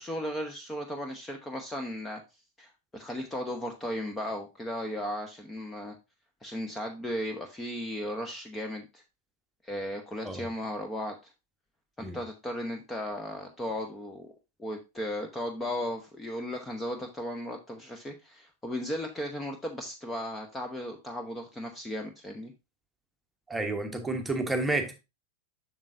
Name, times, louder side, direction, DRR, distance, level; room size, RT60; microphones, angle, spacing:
voice 1, 0.0-2.2 2.6-5.9 6.4-9.0 9.6-11.2 12.0-14.3 14.6-22.5, left 1 dB, 10° left, 1.0 m, -36 dB
voice 2, 23.5-24.9, right 2 dB, 10° right, 1.3 m, -30 dB
7.3 x 6.3 x 2.6 m
figure-of-eight pair, 90°, 0 cm